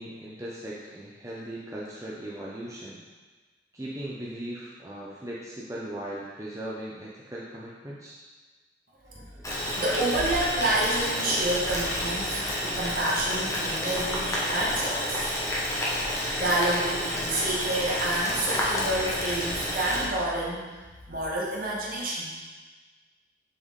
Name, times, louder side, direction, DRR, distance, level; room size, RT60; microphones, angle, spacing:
voice 1, 0.0-3.0 3.7-8.2 9.1-9.5, right 1 dB, 15° right, -6 dB, 0.7 m, -38 dB
Boiling, 9.4-20.0, left 1 dB, 15° left, 1.1 m, -30 dB
voice 2, 9.5-15.3 16.4-20.6 21.1-22.3, right 1 dB, 50° right, -4 dB, 1.4 m, -29 dB
6.3 x 5.6 x 3.7 m, 1.3 s
head